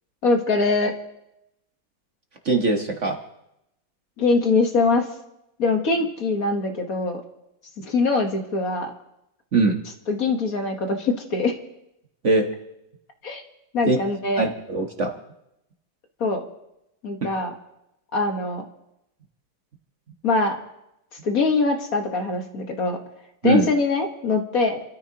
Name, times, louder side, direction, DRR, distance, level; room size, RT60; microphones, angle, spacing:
voice 1, 0.2-0.9 4.2-5.1 5.6-7.2 7.8-8.9 10.1-11.5 13.2-13.4 13.7-14.5 16.2-16.4 17.0-17.5 18.1-18.6 20.2-20.6 21.2-23.0 23.4-24.8, left 3 dB, 50° left, 4 dB, 1.7 m, -23 dB
voice 2, 2.4-3.2 9.5-9.8 12.2-12.5 13.9-14.0 14.4-15.1 23.4-23.7, right 3 dB, 45° right, 3 dB, 1.4 m, -21 dB
30.0 x 13.5 x 2.9 m, 0.85 s
omnidirectional pair, 2.0 m